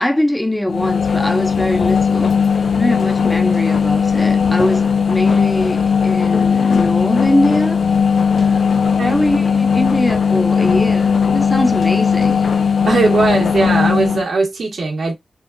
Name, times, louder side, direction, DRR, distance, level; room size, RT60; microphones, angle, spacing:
voice 1, 0.0-2.3 2.8-7.8 8.4-8.7 9.0-12.5, left 1 dB, 10° left, 0.6 m, -21 dB
sound 1, 0.7-14.3, left 6 dB, 65° left, 0.4 m, -17 dB
voice 2, 8.8-9.2 12.9-15.1, right 3 dB, 60° right, 1.2 m, -18 dB
3.8 x 2.4 x 2.2 m
wide cardioid pair, 130°, 0 cm